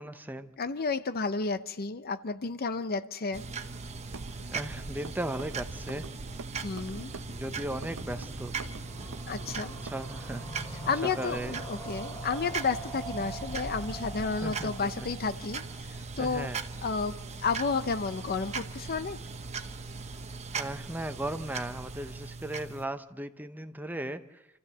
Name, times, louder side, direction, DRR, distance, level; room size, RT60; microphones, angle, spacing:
voice 1, 0.0-0.5 4.5-6.1 7.3-8.5 9.8-10.5 11.0-11.6 14.4-15.1 16.2-16.6 20.5-24.5, right 1 dB, 10° right, 9 dB, 0.7 m, -37 dB
voice 2, 0.6-3.4 6.6-7.1 9.3-9.8 10.9-16.5 16.8-19.2, left 4 dB, 45° left, 12 dB, 0.7 m, -32 dB
sound 1, 3.3-22.8, right 4 dB, 30° right, 1.0 m, -39 dB
sound 2, 4.1-9.9, right 3 dB, 65° right, 0.8 m, -46 dB
sound 3, 5.3-17.1 17.4-17.5 17.7-17.8 18.0-18.1, right 1 dB, 20° left, 4.3 m, -45 dB
28.0 x 14.5 x 6.8 m, 0.93 s
head